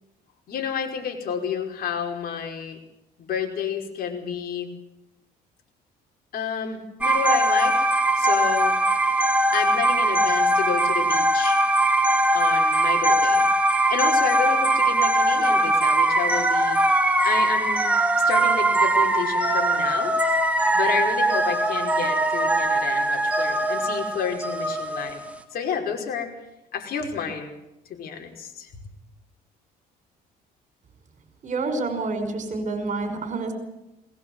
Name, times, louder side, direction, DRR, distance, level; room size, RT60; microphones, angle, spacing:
voice 1, 0.5-2.8 3.2-4.7 6.3-7.9 8.2-8.8 9.5-11.6 12.3-13.4 13.9-16.8 17.2-17.9 18.2-20.1 20.7-25.2 25.5-26.3 26.7-27.5 27.9-28.7, left 7 dB, 60° left, 2 dB, 5.2 m, -30 dB
sound 1, 7.0-25.4, right 1 dB, 10° right, 2.9 m, -21 dB
voice 2, 31.4-33.5, right 3 dB, 45° right, 8 dB, 5.5 m, -28 dB
21.0 x 19.0 x 8.0 m, 0.89 s
cardioid pair, 110°, 17 cm